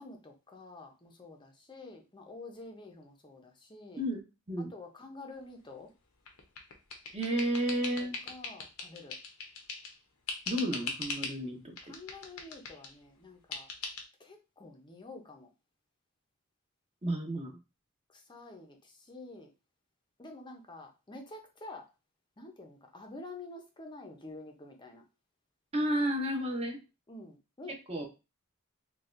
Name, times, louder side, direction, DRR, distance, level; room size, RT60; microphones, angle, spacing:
voice 1, 0.0-4.0 4.7-5.9 8.0-9.2 11.8-13.7 14.2-15.5 18.1-19.5 20.2-21.9 22.4-25.0 27.1-27.7, left 2 dB, 20° left, 3 dB, 0.6 m, -48 dB
sound 1, 6.3-10.0 10.3-11.4 11.8-12.9 13.5-14.0, left 4 dB, 80° left, 0.8 m, -40 dB
voice 2, 7.1-8.1 10.5-11.7 17.0-17.5 25.7-26.8 27.7-28.1, right 1 dB, 25° right, 2 dB, 0.8 m, -32 dB
4.1 x 2.3 x 2.5 m, 0.28 s
head